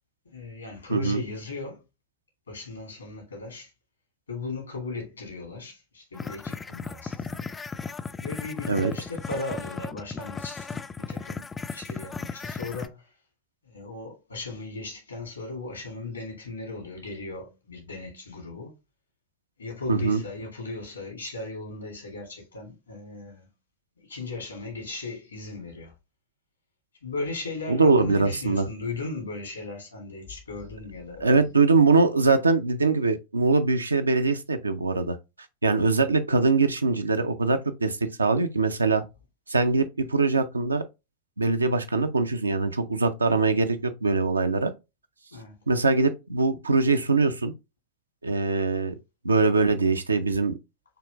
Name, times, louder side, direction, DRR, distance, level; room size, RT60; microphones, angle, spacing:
voice 1, 0.3-1.8 2.5-3.7 4.3-7.5 8.2-11.4 11.7-13.1 13.6-18.8 19.6-23.4 24.1-25.9 27.0-31.5 45.3-45.6, left 3 dB, 80° left, 2.2 m, -37 dB
voice 2, 0.9-1.2 8.7-8.9 19.9-20.2 27.7-28.7 31.2-35.2 35.6-39.0 39.5-40.8 41.4-44.7 45.7-47.5 48.2-48.9 49.2-50.6, right 3 dB, 80° right, 0.6 m, -22 dB
sound 1, 6.2-12.9, left 5 dB, 15° left, 0.3 m, -36 dB
6.8 x 3.1 x 2.4 m
figure-of-eight pair, 90°, 0 cm